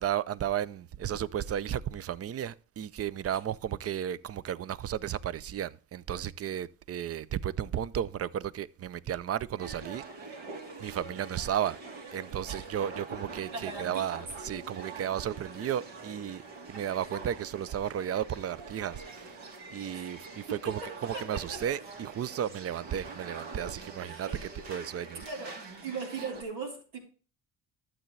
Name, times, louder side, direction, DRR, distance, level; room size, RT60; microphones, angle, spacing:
voice 1, 0.0-10.0 10.8-11.8 12.1-16.4 16.7-19.4 19.7-25.2, right 10 dB, 30° right, 0.5 m, -34 dB
sound 1, 9.6-26.4, right 3 dB, 55° right, 2.3 m, -45 dB
voice 2, 13.5-14.0 19.9-20.1 20.8-21.4 24.0-24.4 24.7-24.8 25.2-25.6 25.8-27.0, right 4 dB, 85° right, 3.8 m, -39 dB
12.0 x 7.6 x 3.2 m
supercardioid pair, 75°, 50 cm